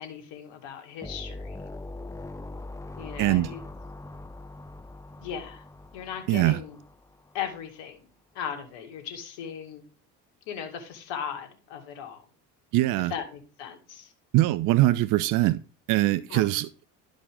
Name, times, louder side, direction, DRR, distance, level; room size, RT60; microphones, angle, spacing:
voice 1, 0.0-1.7 3.0-3.6 5.2-5.6 5.9-6.8 7.3-8.1 8.3-9.8 10.5-12.2 13.0-14.1 16.3-16.5, left 8 dB, 60° left, 2.3 m, -37 dB
sound 1, 1.0-7.5, left 2 dB, 5° left, 0.7 m, -42 dB
voice 2, 3.2-3.5 6.3-6.6 12.7-13.1 14.3-15.6 15.9-16.7, right 17 dB, 45° right, 0.5 m, -22 dB
11.5 x 5.1 x 3.6 m
hypercardioid pair, 70°, 49 cm